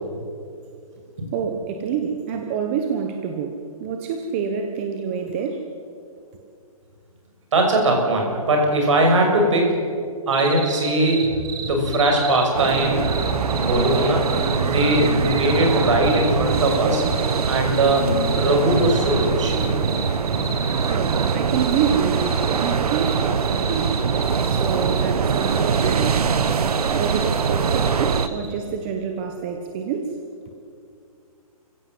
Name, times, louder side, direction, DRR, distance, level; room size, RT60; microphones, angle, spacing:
voice 1, 1.3-5.7 20.9-23.9 24.4-26.3 26.9-30.2, right 7 dB, 20° right, 4 dB, 1.1 m, -27 dB
voice 2, 7.5-9.7 10.3-11.3 11.6-13.1 13.6-14.2 14.6-17.1 17.5-19.5, right 1 dB, 55° right, 2 dB, 6.5 m, -20 dB
sound 1, 10.3-28.5, right 6 dB, 35° right, 3.0 m, -32 dB
sound 2, 11.2-12.0 12.6-14.0 14.3-17.0 18.0-18.3 18.6-20.0 20.3-20.6, left 1 dB, 15° left, 6.3 m, -30 dB
sound 3, 12.5-28.3, right 6 dB, 80° right, 1.3 m, -23 dB
29.5 x 16.0 x 7.8 m, 2.4 s
hypercardioid pair, 175°, 19 cm